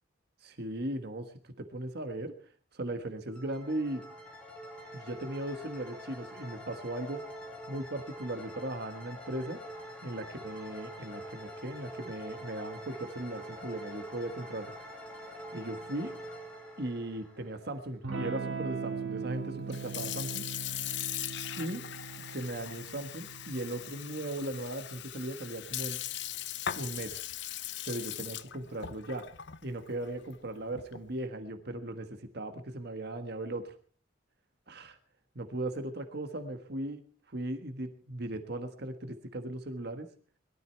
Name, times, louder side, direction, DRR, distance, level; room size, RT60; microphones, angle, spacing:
voice 1, 0.4-1.3 1.6-2.3 2.7-4.0 4.9-7.3 7.7-9.6 10.0-14.7 15.5-16.2 16.8-20.4 21.6-21.9 22.3-26.0 26.8-27.2 27.8-29.3 29.6-33.7 34.7-35.0 35.3-37.0 37.3-40.1, right 1 dB, 55° right, 7 dB, 1.5 m, -38 dB
sound 1, 3.3-18.1, equal, 5° left, 5.8 m, -45 dB
Electric guitar / Strum, 18.0-26.3, right 5 dB, 80° right, 2.4 m, -41 dB
Sink (filling or washing) / Fill (with liquid), 19.6-31.1, left 11 dB, 60° left, 0.8 m, -40 dB
21.5 x 13.5 x 4.5 m, 0.42 s
head